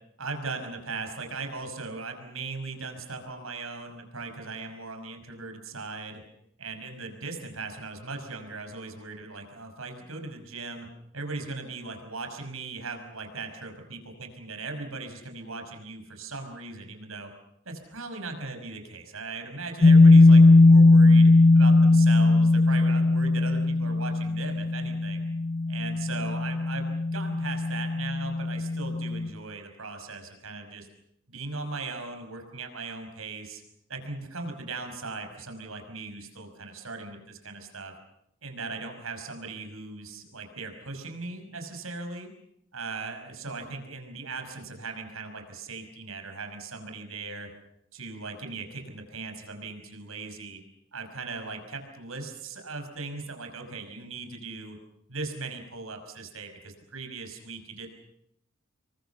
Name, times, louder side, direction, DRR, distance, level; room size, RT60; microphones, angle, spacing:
voice 1, 0.2-6.2 6.6-10.9 11.1-17.3 17.7-25.2 25.7-30.9 31.3-33.6 33.9-37.9 38.4-42.3 42.7-47.5 47.9-50.6 50.9-54.8 55.1-57.9, right 3 dB, 90° right, 5 dB, 5.7 m, -38 dB
sound 1, 19.8-29.3, left 2 dB, 35° left, 0.9 m, -19 dB
27.5 x 23.0 x 7.1 m, 0.76 s
head